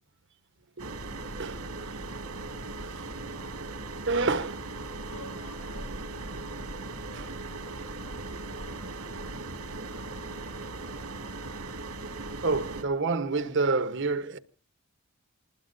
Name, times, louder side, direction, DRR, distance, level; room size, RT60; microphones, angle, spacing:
sound 1, 0.8-12.8, right 2 dB, 85° right, 2.4 m, -38 dB
voice 1, 4.1-4.6 12.4-14.4, right 3 dB, 55° right, 1.2 m, -27 dB
voice 2, 5.0-8.1 8.4-9.5 9.9-11.4, left 1 dB, 90° left, 7.9 m, -52 dB
26.5 x 20.5 x 2.6 m
head